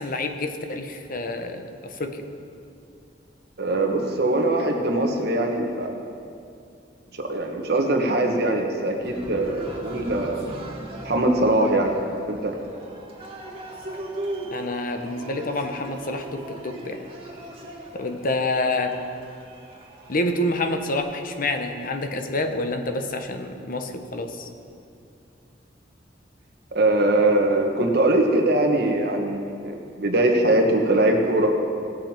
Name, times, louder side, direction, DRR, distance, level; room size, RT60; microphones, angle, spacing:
voice 1, 0.0-2.3 14.5-17.1 17.9-19.0 20.1-24.5, left 2 dB, 50° left, 6 dB, 0.9 m, -28 dB
voice 2, 3.6-6.0 7.1-10.4 11.0-12.0 12.3-12.6 26.7-31.5, right 1 dB, 60° right, 2 dB, 1.4 m, -22 dB
Cheering, 9.0-21.0, right 1 dB, 30° right, 2.0 m, -38 dB
18.0 x 7.4 x 4.4 m, 2.5 s
head